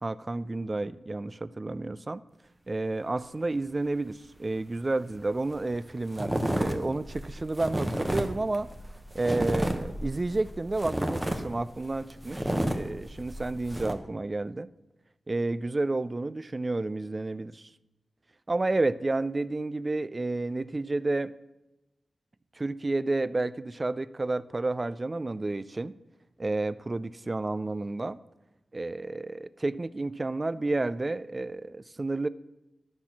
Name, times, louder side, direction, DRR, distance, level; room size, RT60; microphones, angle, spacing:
voice 1, 0.0-2.2 2.7-8.7 9.1-14.7 15.3-17.7 18.5-21.3 22.6-25.9 26.4-28.2 28.7-32.3, right 2 dB, 30° right, 16 dB, 0.3 m, -31 dB
sound 1, 5.2-5.3 5.5-5.8 6.1-13.9, right 1 dB, 15° right, 0.9 m, -31 dB
12.5 x 4.2 x 5.9 m, 0.98 s
wide cardioid pair, 95°, 0 cm